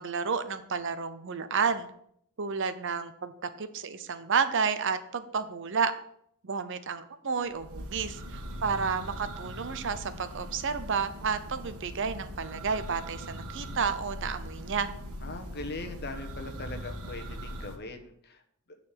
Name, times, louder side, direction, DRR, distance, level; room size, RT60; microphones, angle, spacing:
voice 1, 0.0-1.9 2.4-3.3 3.6-5.9 6.4-14.9, right 5 dB, 55° right, 11 dB, 0.7 m, -31 dB
Church bell, 7.5-17.8, equal, 85° right, 1.4 m, -41 dB
voice 2, 8.5-9.2 15.2-18.4, left 2 dB, 45° left, 6 dB, 1.1 m, -41 dB
9.6 x 4.2 x 7.4 m, 0.70 s
head